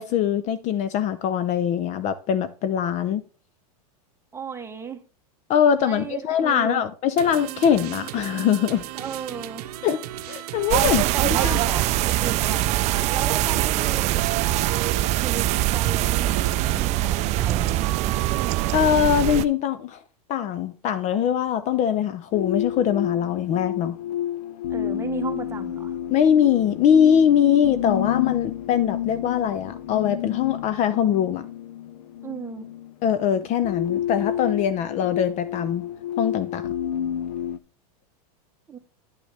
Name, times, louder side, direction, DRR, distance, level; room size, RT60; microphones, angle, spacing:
voice 1, 0.0-3.2 5.5-8.9 9.8-10.0 10.3-11.0 11.4-11.6 18.7-20.0 20.3-24.0 26.1-31.4 33.0-35.9 36.2-36.7, left 9 dB, 35° left, 0.6 m, -22 dB
voice 2, 4.3-5.0 5.8-6.9 8.9-9.7 10.8-14.8 15.2-17.9 24.7-26.0 32.2-32.7 38.7-38.8, right 6 dB, 15° right, 1.1 m, -35 dB
sound 1, 7.2-16.8, right 12 dB, 75° right, 0.7 m, -36 dB
sound 2, 10.7-19.5, right 16 dB, 35° right, 0.4 m, -23 dB
sound 3, 22.3-37.6, left 10 dB, 85° left, 0.6 m, -30 dB
10.5 x 6.1 x 3.4 m
supercardioid pair, 130°, 20 cm